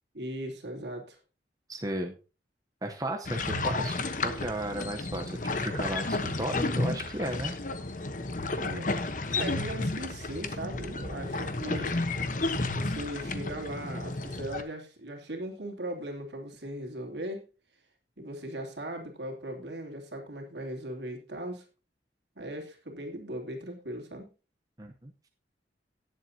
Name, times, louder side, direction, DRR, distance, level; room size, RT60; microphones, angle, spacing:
voice 1, 0.1-1.2 8.6-8.9 9.2-12.0 12.7-17.4 18.2-21.6 22.4-24.3, right 1 dB, 75° right, 1 dB, 3.1 m, -38 dB
voice 2, 1.7-2.2 2.8-7.5 24.8-25.1, right 1 dB, 20° right, 3 dB, 0.9 m, -35 dB
sound 1, 3.2-14.6, left 2 dB, 45° left, 1.1 m, -32 dB
18.0 x 7.8 x 2.8 m, 0.32 s
head